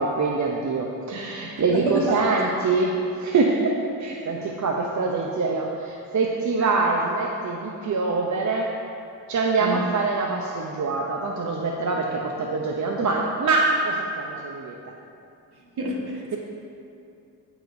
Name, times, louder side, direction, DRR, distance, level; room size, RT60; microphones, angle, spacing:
voice 1, 0.0-8.7 9.3-14.9, right 3 dB, 45° right, 0 dB, 0.7 m, -24 dB
voice 2, 1.7-2.2 6.6-6.7 9.6-9.8 15.8-16.4, right 1 dB, 65° right, -2 dB, 1.6 m, -27 dB
13.5 x 4.9 x 2.6 m, 2.6 s
cardioid pair, 60°, 41 cm